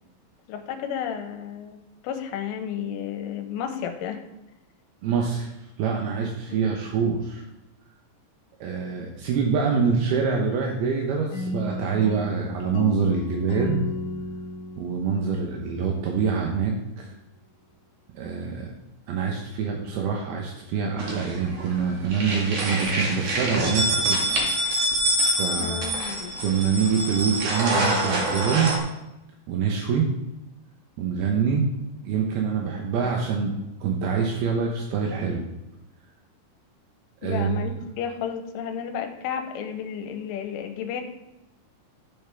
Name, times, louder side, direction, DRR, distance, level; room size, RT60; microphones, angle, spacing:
voice 1, 0.5-4.2 6.5-6.7 25.6-26.4 37.2-41.0, left 8 dB, 90° left, 6 dB, 3.3 m, -32 dB
voice 2, 5.0-5.5 5.8-7.4 8.6-13.8 14.8-17.1 18.1-18.7 19.1-24.2 25.4-25.8 26.4-28.8 29.5-30.1 31.0-31.7 32.0-33.5 33.8-35.4 37.2-37.5, right 6 dB, 75° right, 0 dB, 2.4 m, -25 dB
sound 1, 11.3-16.2, left 3 dB, 75° left, 1.8 m, -33 dB
sound 2, 21.0-21.8 22.1-28.8, right 1 dB, 55° right, 1.9 m, -26 dB
12.5 x 7.1 x 3.5 m, 0.93 s
omnidirectional pair, 5.7 m